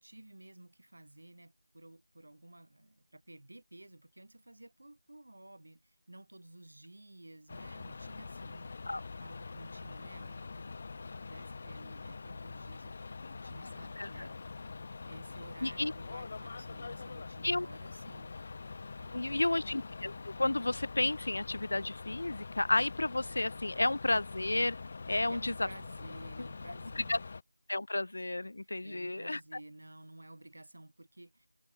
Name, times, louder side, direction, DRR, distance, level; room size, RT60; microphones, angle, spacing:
voice 1, 0.0-8.9 9.2-10.7 11.2-13.0 13.2-14.7 15.0-18.4 18.9-19.6 25.3-27.2 28.6-31.5, right 1 dB, 70° right, 4.8 m, -53 dB
sound 1, 7.5-27.4, left 4 dB, 20° left, 0.8 m, -44 dB
voice 2, 14.0-14.3 15.6-15.9 17.4-17.7 19.1-24.8 25.1-25.7 26.4-26.5 27.0-27.2 27.7-29.4, left 2 dB, 50° left, 0.5 m, -32 dB
figure-of-eight pair, 180°, 0 cm